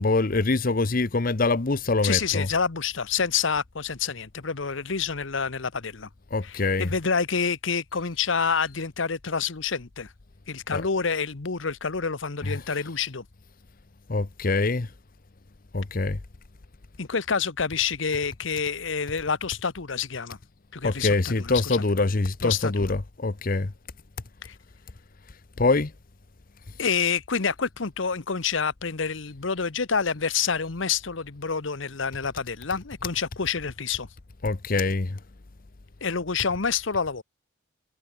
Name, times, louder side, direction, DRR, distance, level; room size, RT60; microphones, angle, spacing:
voice 1, 0.0-2.5 6.3-6.9 10.7-10.8 12.4-12.6 14.1-14.9 15.7-16.2 20.8-23.7 25.6-25.9 34.4-35.2, left 3 dB, 45° left, 0.8 m, -24 dB
voice 2, 2.0-6.1 6.4-10.1 10.5-13.2 17.0-20.4 20.7-21.9 22.4-22.9 24.4-24.5 26.8-34.1 36.0-37.2, left 6 dB, 70° left, 1.0 m, -28 dB
head